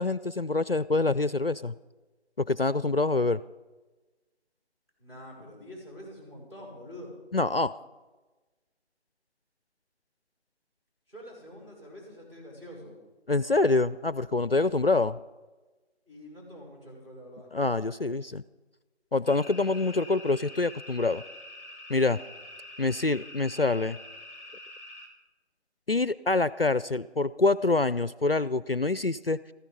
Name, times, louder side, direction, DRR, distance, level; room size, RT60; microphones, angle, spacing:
voice 1, 0.0-1.7 2.4-3.4 7.3-7.7 13.3-15.2 17.5-18.4 19.1-21.2 21.9-22.2 22.8-24.0 25.9-29.4, left 3 dB, 55° left, 17 dB, 0.4 m, -26 dB
voice 2, 5.0-7.2 11.1-13.0 16.1-17.5, equal, 25° right, -1 dB, 5.5 m, -46 dB
sound 1, 19.3-25.1, left 1 dB, 55° right, 4.7 m, -46 dB
15.0 x 14.0 x 5.2 m, 1.2 s
figure-of-eight pair, 175°, 34 cm